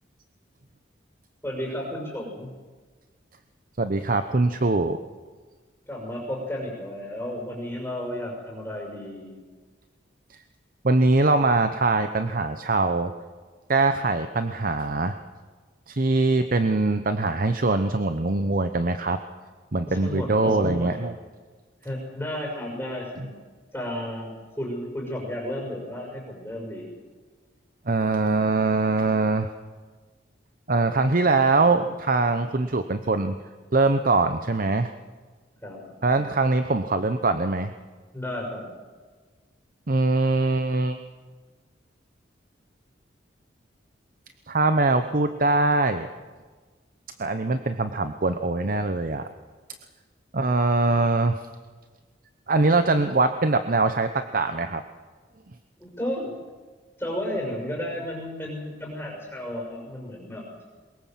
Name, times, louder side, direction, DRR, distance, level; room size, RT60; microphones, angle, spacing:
voice 1, 1.4-2.5 5.9-9.4 19.9-21.0 21.8-23.3 23.7-26.9 35.6-35.9 38.1-38.7 55.8-56.3 57.0-60.4, left 1 dB, 10° left, -2 dB, 6.1 m, -33 dB
voice 2, 3.8-5.0 10.8-13.1 13.7-15.2 15.9-19.2 19.7-21.2 27.9-29.5 30.7-33.4 33.7-34.9 36.0-37.7 39.9-41.0 44.5-46.1 47.2-49.3 50.3-51.4 52.5-54.8, right 3 dB, 50° right, 9 dB, 0.9 m, -22 dB
22.5 x 21.5 x 7.5 m, 1.4 s
head